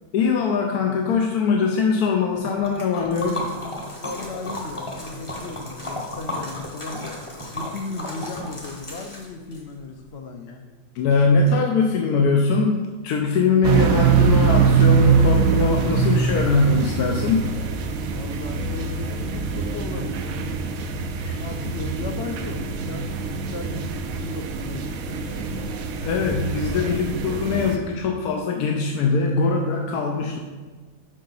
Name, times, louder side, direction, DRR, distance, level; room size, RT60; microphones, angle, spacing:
voice 1, 0.1-3.5 10.9-17.5 21.2-21.7 26.0-30.4, left 4 dB, 80° left, 1 dB, 1.2 m, -22 dB
Liquid, 2.4-9.6, left 1 dB, 25° left, 0.9 m, -34 dB
voice 2, 4.0-10.6 18.0-20.4 21.4-25.7 26.7-27.1, left 3 dB, 55° left, 5 dB, 0.7 m, -36 dB
sound 1, 13.6-27.8, right 6 dB, 70° right, 1.0 m, -23 dB
6.4 x 5.7 x 3.9 m, 1.4 s
omnidirectional pair, 1.6 m